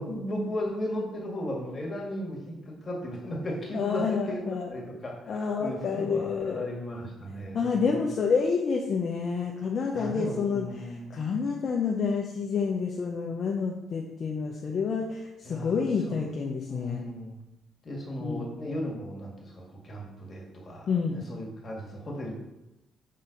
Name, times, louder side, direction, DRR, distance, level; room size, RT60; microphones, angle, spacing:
voice 1, 0.0-4.4 4.7-8.0 9.9-11.1 15.4-16.2 16.7-17.4 17.8-22.3, equal, 30° left, -2 dB, 2.0 m, -36 dB
voice 2, 3.7-4.7 5.3-6.7 7.5-17.0 18.2-18.5 20.9-21.2, left 5 dB, 55° left, 0 dB, 0.7 m, -29 dB
5.4 x 4.3 x 5.3 m, 0.95 s
cardioid pair, 90°, 0 cm